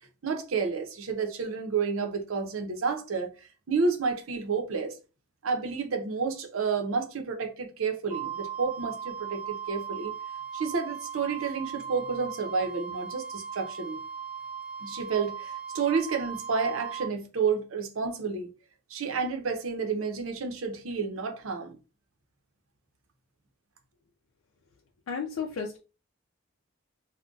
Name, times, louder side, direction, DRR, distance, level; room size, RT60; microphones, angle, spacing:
voice 1, 0.2-3.3 3.7-5.0 5.4-10.1 10.5-14.0 14.8-18.5 18.9-21.8, right 5 dB, 85° right, 0.6 m, -30 dB
Wind instrument woodwind instrument, 8.1-17.1, right 7 dB, 5° right, 0.4 m, -38 dB
voice 2, 25.1-25.8, left 6 dB, 90° left, 0.5 m, -33 dB
2.3 x 2.1 x 3.7 m
head